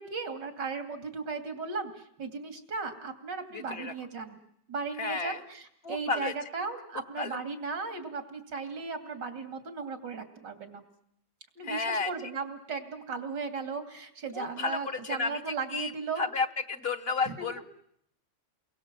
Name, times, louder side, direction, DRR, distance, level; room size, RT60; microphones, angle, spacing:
voice 1, 0.0-4.4 4.7-10.8 11.6-16.2 17.3-17.5, right 4 dB, 85° right, 7 dB, 3.1 m, -36 dB
voice 2, 3.5-3.9 5.0-5.4 5.8-6.3 7.2-7.4 11.6-12.1 14.3-15.4 15.7-15.9 16.2-17.6, left 4 dB, 40° left, 11 dB, 1.2 m, -32 dB
29.5 x 22.5 x 7.5 m, 0.74 s
omnidirectional pair, 1.8 m